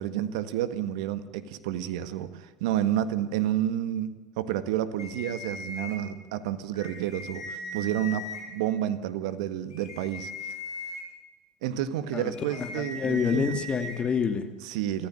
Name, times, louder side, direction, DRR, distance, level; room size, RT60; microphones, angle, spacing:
voice 1, 0.0-10.6 11.6-13.5 14.6-15.1, right 11 dB, 70° right, 12 dB, 1.7 m, -30 dB
sound 1, 4.7-8.7 9.2-9.4, equal, 5° right, 4.4 m, -54 dB
sound 2, 5.0-5.9 6.7-8.4 9.7-11.0 12.3-14.0, left 2 dB, 90° left, 5.7 m, -39 dB
voice 2, 12.6-14.5, left 6 dB, 30° left, 9 dB, 2.7 m, -27 dB
27.0 x 15.0 x 9.0 m, 1.3 s
hypercardioid pair, 80°, 3 cm